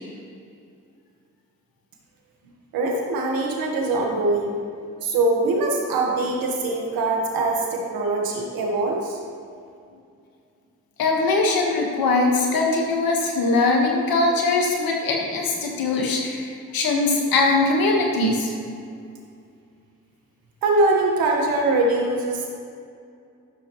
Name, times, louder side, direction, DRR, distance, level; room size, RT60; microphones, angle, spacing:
voice 1, 2.7-4.6 5.0-9.2 20.6-22.5, right 2 dB, 90° right, 0 dB, 1.4 m, -22 dB
voice 2, 11.0-18.5, left 3 dB, 85° left, 0 dB, 1.5 m, -21 dB
12.5 x 6.6 x 3.1 m, 2.4 s
supercardioid pair, 50°, 35 cm